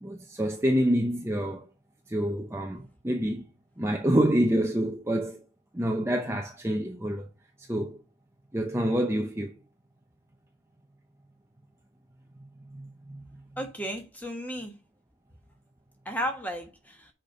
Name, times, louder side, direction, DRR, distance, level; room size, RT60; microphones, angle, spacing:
voice 1, 0.0-1.7 2.1-3.4 3.8-5.4 5.7-7.3 7.6-8.0 8.5-9.6 12.7-13.2, equal, 10° right, 0.7 m, -27 dB
voice 2, 13.6-14.7 16.0-17.1, equal, 5° left, 1.4 m, -34 dB
6.6 x 5.2 x 5.2 m
head